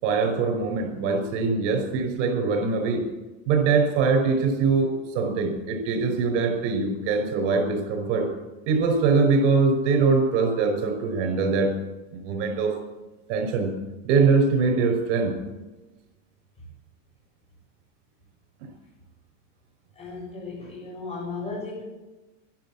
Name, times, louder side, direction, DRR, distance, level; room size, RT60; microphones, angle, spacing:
voice 1, 0.0-3.1 3.5-8.3 8.7-11.7 12.1-12.8 13.3-13.8 14.0-15.4, right 4 dB, 60° right, 5 dB, 5.2 m, -23 dB
voice 2, 19.9-21.8, left 3 dB, 15° left, -3 dB, 7.3 m, -35 dB
12.0 x 11.5 x 8.6 m, 1.1 s
supercardioid pair, 125°, 37 cm